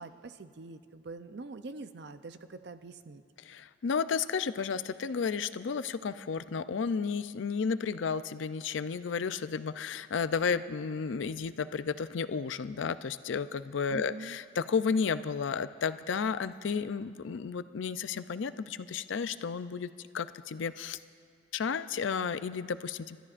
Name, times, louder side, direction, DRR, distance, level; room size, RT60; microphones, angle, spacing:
voice 1, 0.0-3.2 13.9-14.4, right 3 dB, 55° right, 10 dB, 0.5 m, -44 dB
voice 2, 3.4-19.9 20.1-21.0 21.5-23.2, left 5 dB, 70° left, 13 dB, 0.4 m, -32 dB
30.0 x 13.5 x 2.5 m, 2.1 s
head